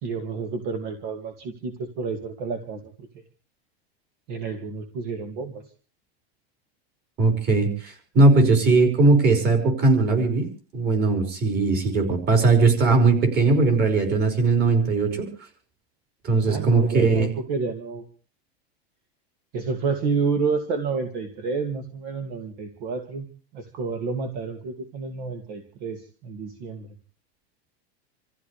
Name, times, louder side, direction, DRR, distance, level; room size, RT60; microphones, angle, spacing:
voice 1, 0.0-3.1 4.3-5.6 16.5-18.0 19.5-23.3 23.5-26.9, right 4 dB, 50° right, 6 dB, 2.4 m, -30 dB
voice 2, 7.2-10.5 10.7-15.3 16.2-17.3, right 3 dB, 30° right, 4 dB, 5.2 m, -19 dB
28.0 x 15.0 x 3.3 m, 0.37 s
supercardioid pair, 150°, 33 cm